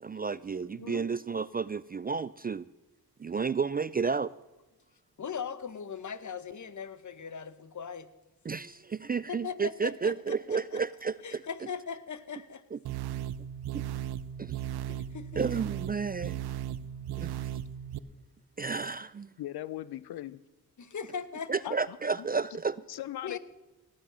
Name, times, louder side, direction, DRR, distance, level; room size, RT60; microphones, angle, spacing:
voice 1, 0.0-2.7 3.2-4.3 8.5-11.4 12.7-12.8 14.4-14.6 15.4-16.4 17.2-17.3 18.6-19.3 21.5-22.8, right 5 dB, 25° right, 19 dB, 0.3 m, -32 dB
voice 2, 0.7-1.1 5.2-8.1 9.3-10.8 11.2-12.6 14.9-15.4 16.8-17.1 18.8-18.9 20.8-21.7 23.2-23.4, left 6 dB, 50° left, 14 dB, 1.1 m, -40 dB
sound 1, 12.8-18.0, right 11 dB, 80° right, 0.7 m, -36 dB
voice 3, 19.4-20.4 21.6-22.0 22.9-23.4, left 13 dB, 80° left, 19 dB, 0.6 m, -38 dB
17.5 x 8.6 x 6.2 m, 1.1 s
cardioid pair, 65°, 38 cm